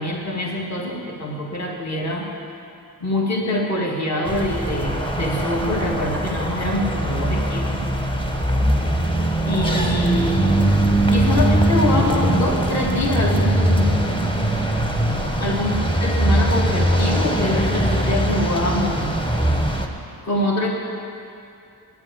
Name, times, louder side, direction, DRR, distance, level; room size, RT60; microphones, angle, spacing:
voice 1, 0.0-2.3 3.0-7.8 9.5-10.5 11.1-14.1 15.4-19.1 20.2-20.7, left 1 dB, 45° left, -1 dB, 1.9 m, -24 dB
sound 1, 4.3-19.9, right 1 dB, 15° left, 1.1 m, -21 dB
9.5 x 7.9 x 9.0 m, 2.6 s
cardioid pair, 80°, 39 cm